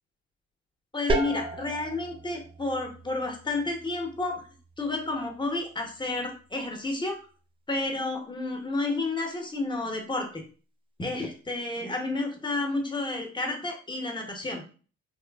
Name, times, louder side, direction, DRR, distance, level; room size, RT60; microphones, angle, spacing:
voice 1, 0.9-4.4 4.8-7.2 7.7-10.4 11.0-14.6, left 2 dB, 15° left, 3 dB, 0.7 m, -31 dB
sound 1, 1.1-6.6, right 2 dB, 20° right, 0.4 m, -36 dB
3.1 x 2.3 x 2.2 m, 0.38 s
cardioid pair, 90°, 30 cm